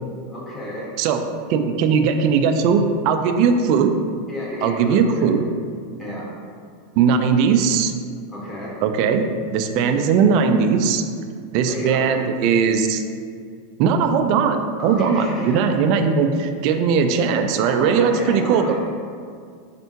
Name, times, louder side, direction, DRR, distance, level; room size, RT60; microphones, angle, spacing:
voice 1, 0.3-0.9 4.3-5.3 6.0-6.3 8.3-8.8 11.7-12.2 14.8-15.8 17.6-18.7, left 1 dB, 20° left, -6 dB, 1.4 m, -32 dB
voice 2, 1.5-3.9 4.6-5.4 7.0-7.9 8.8-11.0 11.5-13.0 13.8-18.7, right 6 dB, 55° right, 7 dB, 0.3 m, -19 dB
4.4 x 3.3 x 2.8 m, 2.2 s
hypercardioid pair, 105°, 0 cm